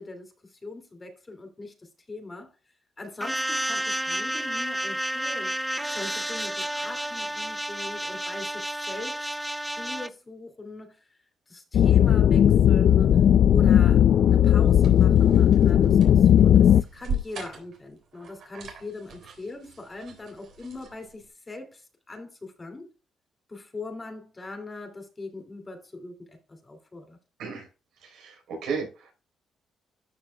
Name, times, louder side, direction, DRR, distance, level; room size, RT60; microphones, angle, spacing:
voice 1, 0.0-2.5 3.0-5.5 5.9-9.3 9.8-11.0 11.5-13.2 13.5-22.9 23.5-27.2, left 2 dB, 25° left, 2.8 m, -41 dB
sound 1, 3.2-10.1, right 1 dB, 5° right, 0.6 m, -31 dB
sound 2, 11.7-16.8, left 10 dB, 65° left, 0.4 m, -17 dB
sound 3, 14.6-21.3, right 1 dB, 65° right, 3.7 m, -40 dB
voice 2, 28.0-29.1, right 5 dB, 80° right, 4.6 m, -34 dB
13.0 x 5.9 x 2.3 m
cardioid pair, 90°, 0 cm